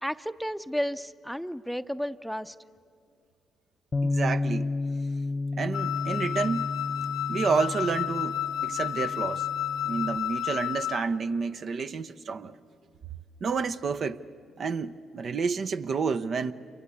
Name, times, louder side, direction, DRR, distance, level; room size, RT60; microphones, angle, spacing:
voice 1, 0.0-2.5, equal, ahead, 0.7 m, -32 dB
Bass guitar, 3.9-10.2, left 2 dB, 35° left, 0.8 m, -32 dB
voice 2, 4.0-4.7 5.5-6.7 7.3-9.5 9.8-12.6 13.4-14.2 14.6-16.5, right 5 dB, 55° right, 0.7 m, -29 dB
Wind instrument woodwind instrument, 5.7-11.1, left 11 dB, 75° left, 0.8 m, -31 dB
27.5 x 22.0 x 8.4 m
supercardioid pair, 55°, 0 cm